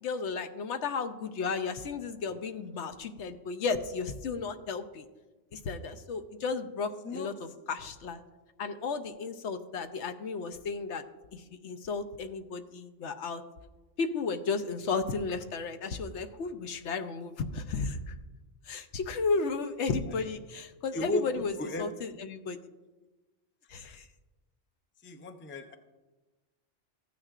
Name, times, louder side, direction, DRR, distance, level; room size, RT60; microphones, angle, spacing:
voice 1, 0.0-5.1 5.5-8.2 8.6-11.0 11.3-13.4 14.0-18.1 18.7-21.5 21.8-22.6 23.7-24.1, left 4 dB, 75° left, 9 dB, 1.0 m, -34 dB
voice 2, 20.9-21.9 23.8-24.0 25.0-25.8, left 2 dB, 15° left, 7 dB, 0.4 m, -35 dB
15.0 x 9.4 x 2.5 m, 1.2 s
omnidirectional pair, 1.2 m